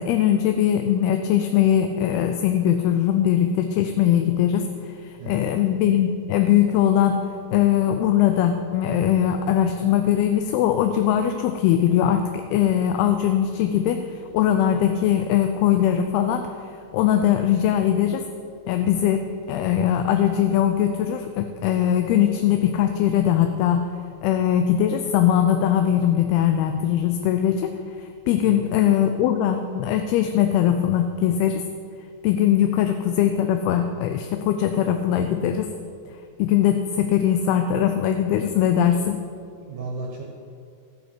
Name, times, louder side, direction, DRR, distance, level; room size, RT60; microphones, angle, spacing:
voice 1, 0.0-16.5 16.9-18.3 18.7-23.9 24.2-31.6 32.2-35.7 36.4-39.2, left 10 dB, 80° left, 7 dB, 2.5 m, -21 dB
voice 2, 5.2-5.6 28.4-29.1 39.6-40.2, right 3 dB, 65° right, -1 dB, 2.5 m, -36 dB
14.0 x 8.2 x 8.1 m, 2.4 s
omnidirectional pair, 4.7 m